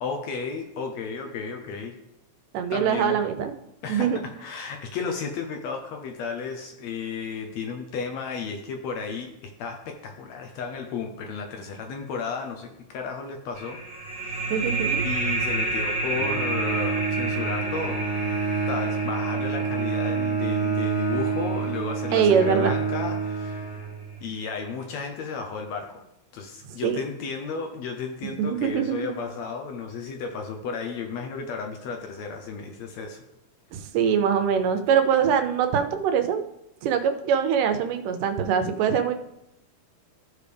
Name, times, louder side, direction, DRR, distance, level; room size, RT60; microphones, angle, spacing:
voice 1, 0.0-2.0 2.7-3.3 3.8-13.8 14.2-14.5 15.0-18.0 18.7-23.7 24.2-26.0 26.3-33.2, left 5 dB, 70° left, 4 dB, 1.7 m, -33 dB
voice 2, 2.5-3.6 3.9-4.2 14.5-15.0 22.1-22.7 26.8-27.0 28.2-29.1 33.7-36.4 36.8-39.1, right 7 dB, 85° right, 7 dB, 2.3 m, -23 dB
sound 1, 13.6-22.8, right 2 dB, 15° left, 3.3 m, -31 dB
Bowed string instrument, 16.1-24.3, right 5 dB, 25° right, 3.9 m, -28 dB
14.5 x 5.1 x 3.4 m, 0.87 s
omnidirectional pair, 3.7 m